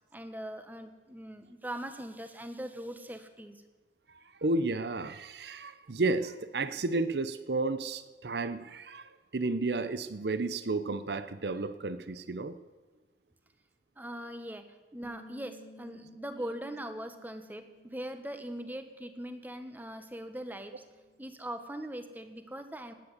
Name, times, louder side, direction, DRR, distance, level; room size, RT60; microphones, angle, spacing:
voice 1, 0.1-3.6 14.0-14.6 14.9-20.8 21.2-22.9, right 1 dB, 10° right, 8 dB, 1.2 m, -41 dB
voice 2, 4.1-12.6, right 3 dB, 65° right, 12 dB, 0.7 m, -32 dB
Bass guitar, 15.0-21.3, left 1 dB, 20° left, 1.5 m, -57 dB
18.0 x 9.8 x 8.1 m, 1.3 s
head